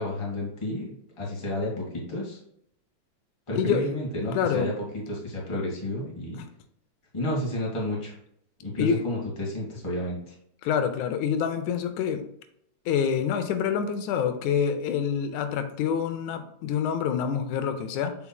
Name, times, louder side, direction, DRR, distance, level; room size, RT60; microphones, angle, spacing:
voice 1, 0.0-2.4 3.5-6.4 7.1-8.1 8.6-10.3, left 1 dB, 15° left, -4 dB, 1.5 m, -31 dB
voice 2, 3.5-3.9 4.3-4.7 6.4-6.5 8.8-9.0 10.6-12.3 12.9-18.2, left 7 dB, 90° left, 9 dB, 2.1 m, -26 dB
7.0 x 5.9 x 2.3 m, 0.72 s
omnidirectional pair, 3.3 m